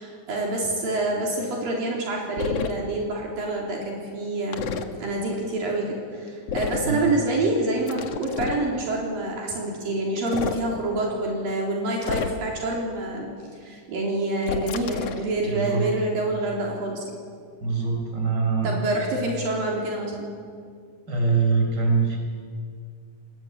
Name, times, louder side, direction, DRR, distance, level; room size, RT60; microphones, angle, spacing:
voice 1, 0.0-4.7 5.0-13.3 13.6-17.0 18.6-20.3, right 2 dB, 70° right, -2 dB, 5.3 m, -27 dB
sound 1, 2.4-2.7 4.5-4.9 6.5-6.9 7.9-8.6 10.2-10.6 12.0-12.6 14.4-15.3, left 6 dB, 55° left, 2.1 m, -30 dB
voice 2, 6.8-7.1 15.4-15.9 17.6-18.8 21.1-22.2, right 4 dB, 25° right, 1 dB, 6.1 m, -23 dB
29.0 x 20.5 x 8.9 m, 2.1 s
omnidirectional pair, 4.2 m